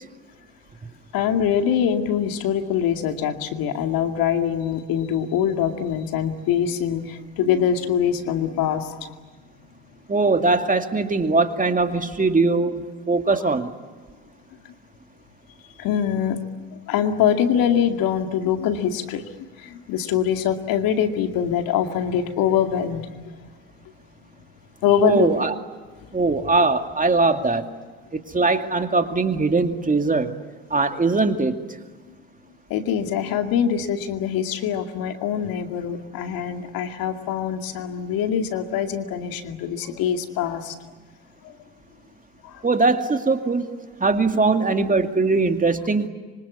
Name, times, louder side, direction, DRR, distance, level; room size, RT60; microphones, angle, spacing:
voice 1, 1.1-9.2 14.6-14.7 15.8-16.4 16.9-19.3 19.6-23.1 24.8-25.3 32.7-40.8 41.4-41.5 42.4-42.6, left 8 dB, 70° left, 6 dB, 2.4 m, -23 dB
voice 2, 10.1-13.7 25.0-25.5 26.1-27.6 28.3-30.3 30.7-31.6 42.6-43.7 44.0-46.1, right 3 dB, 20° right, 7 dB, 2.4 m, -21 dB
26.0 x 25.0 x 8.5 m, 1.5 s
hypercardioid pair, 65°, 36 cm